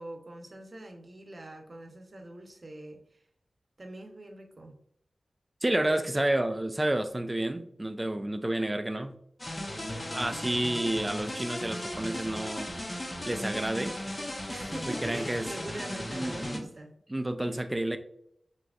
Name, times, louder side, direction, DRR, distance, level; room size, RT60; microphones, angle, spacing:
voice 1, 0.0-3.2 3.8-4.7 9.8-10.6 14.5-16.9, right 1 dB, 45° right, 1.0 m, -43 dB
voice 2, 5.6-9.1 10.1-12.7 13.3-14.0 14.9-15.5 15.9-16.7 17.1-18.0, right 1 dB, 20° right, 0.5 m, -30 dB
sound 1, 9.4-16.6, left 1 dB, 30° left, 1.0 m, -37 dB
6.2 x 2.9 x 2.5 m
cardioid pair, 55°, 0 cm